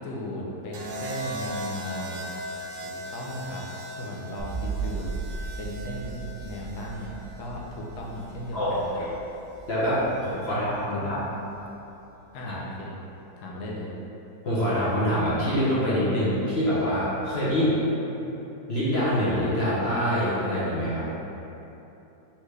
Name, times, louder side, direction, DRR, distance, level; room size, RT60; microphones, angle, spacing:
voice 1, 0.0-2.2 2.8-5.1 5.6-9.1 10.1-10.6 10.9-11.2 12.3-13.0 13.4-13.9 17.5-17.7, left 1 dB, 75° left, -3 dB, 1.2 m, -36 dB
sound 1, 0.7-8.9 10.1-10.5, right 1 dB, 70° right, 0.9 m, -39 dB
sound 2, 4.4-11.6, right 5 dB, 15° right, 0.5 m, -37 dB
voice 2, 8.5-9.1 9.7-11.2 14.4-17.8 18.7-21.1, equal, 45° left, -10 dB, 1.0 m, -25 dB
4.2 x 3.5 x 3.2 m, 3.0 s
omnidirectional pair, 1.8 m